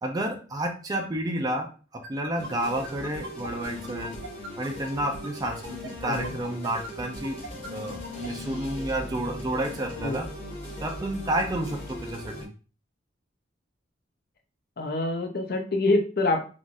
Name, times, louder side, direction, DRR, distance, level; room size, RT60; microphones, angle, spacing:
voice 1, 0.0-4.1 4.6-7.4 7.7-10.3 10.8-12.5, right 1 dB, 20° right, 3 dB, 0.4 m, -30 dB
sound 1, 2.0-8.3, right 1 dB, 75° right, 0.7 m, -40 dB
sound 2, 2.4-12.5, left 1 dB, 30° left, 1.1 m, -39 dB
voice 2, 6.0-6.3 10.0-10.1 14.8-16.4, left 2 dB, 55° left, 4 dB, 0.6 m, -26 dB
3.3 x 2.5 x 2.5 m, 0.36 s
head